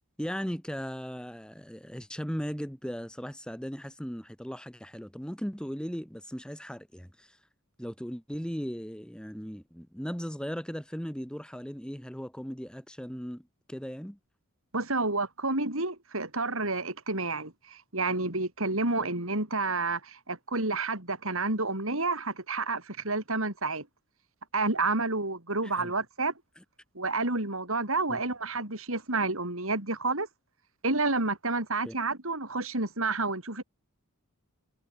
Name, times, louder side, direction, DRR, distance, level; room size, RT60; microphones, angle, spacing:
voice 1, 0.2-7.4 7.8-14.2 19.0-19.1 25.6-25.9 26.6-26.7 28.1-28.2 31.9-32.0, equal, 5° left, 3.4 m, -37 dB
voice 2, 14.7-23.9 24.5-26.3 27.0-30.3 30.8-33.6, right 3 dB, 65° right, 5.4 m, -30 dB
head